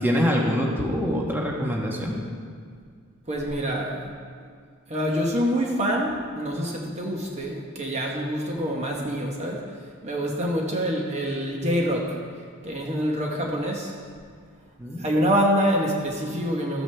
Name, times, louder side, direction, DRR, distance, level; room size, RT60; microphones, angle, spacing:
voice 1, 0.0-2.2 14.8-15.0, equal, 10° right, -2 dB, 1.2 m, -24 dB
voice 2, 3.3-4.1 4.9-9.6 10.0-12.2 12.6-13.9 15.0-16.8, equal, 30° right, -1 dB, 1.0 m, -26 dB
14.0 x 8.6 x 3.4 m, 2.1 s
head